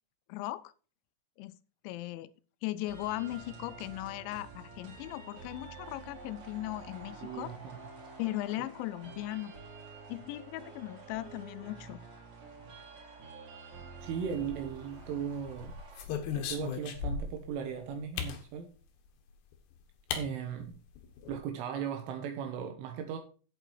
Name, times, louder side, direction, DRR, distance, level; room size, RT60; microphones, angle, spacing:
voice 1, 0.3-0.7 1.4-1.6 1.8-2.3 2.6-7.5 8.2-9.5 10.1-12.0, left 16 dB, 85° left, 2.7 m, -38 dB
sound 1, 2.9-16.0, right 4 dB, 40° right, 3.7 m, -49 dB
voice 2, 7.2-7.8 14.0-15.8 16.4-18.7 20.2-20.8 21.3-23.2, right 7 dB, 80° right, 3.6 m, -37 dB
sound 2, 14.3-15.0 15.5-17.5 18.2-18.4 19.5-19.6 20.1-20.3 20.6-20.7 21.0-21.4, left 7 dB, 65° left, 3.3 m, -37 dB
8.6 x 8.0 x 4.7 m
omnidirectional pair, 5.6 m